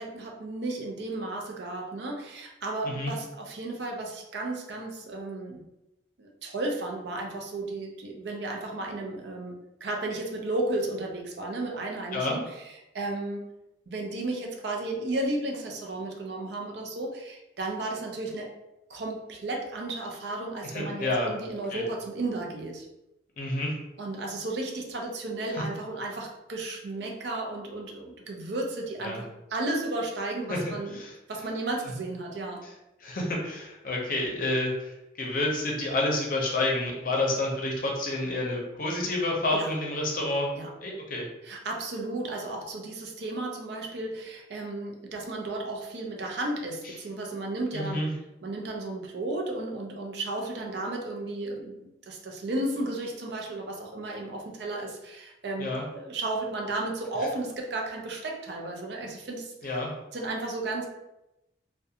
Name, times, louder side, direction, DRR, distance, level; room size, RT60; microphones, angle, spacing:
voice 1, 0.0-5.6 6.2-12.6 12.9-13.4 13.9-18.5 18.9-22.9 24.0-31.0 31.3-32.6 39.5-39.7 40.6-40.7 41.4-48.0 48.4-59.8 60.1-60.9, right 2 dB, 70° right, 1 dB, 0.5 m, -34 dB
voice 2, 20.7-21.3 21.7-21.8 23.4-23.7 25.5-25.6 29.0-29.2 30.5-30.6 30.9-31.1 33.0-40.5 40.8-41.3 46.8-46.9 47.7-48.1 55.6-55.8 59.6-59.9, left 2 dB, 50° left, -1 dB, 0.6 m, -29 dB
2.4 x 2.2 x 2.7 m, 0.91 s
head